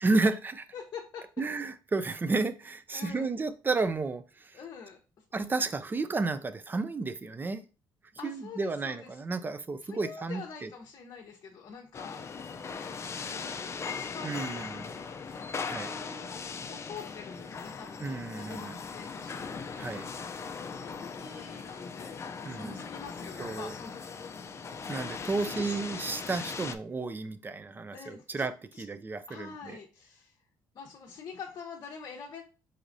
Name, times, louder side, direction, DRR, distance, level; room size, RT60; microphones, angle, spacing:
voice 1, 0.0-0.7 1.4-4.6 5.3-7.6 8.2-10.7 14.2-14.9 15.6-15.9 18.0-18.7 19.8-20.1 22.5-22.8 23.4-23.7 24.9-28.5 28.8-29.8, right 3 dB, 25° right, 0.5 m, -32 dB
voice 2, 0.7-1.3 2.9-3.3 4.5-5.2 8.2-9.4 9.8-12.2 12.8-13.5 13.8-14.6 14.9-19.8 20.7-24.1 25.4-25.7 27.9-28.5 28.7-28.8 29.3-30.4 30.7-32.4, left 6 dB, 50° left, 0.9 m, -46 dB
sound 1, 11.9-26.7, left 5 dB, 35° left, 0.5 m, -39 dB
4.6 x 4.1 x 2.6 m
cardioid pair, 105°, 9 cm